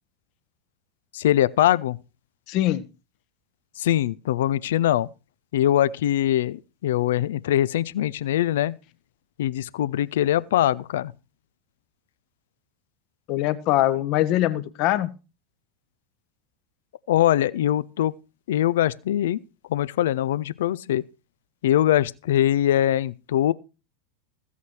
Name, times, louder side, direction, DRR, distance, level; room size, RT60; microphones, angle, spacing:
voice 1, 1.1-2.0 3.8-5.1 5.5-8.8 9.4-11.1 17.1-18.1 18.5-19.4 19.7-21.0 21.6-23.5, left 12 dB, 60° left, 0.6 m, -22 dB
voice 2, 2.5-2.8 13.3-15.1, left 14 dB, 45° left, 1.2 m, -22 dB
15.5 x 8.4 x 4.7 m
figure-of-eight pair, 85°, 0 cm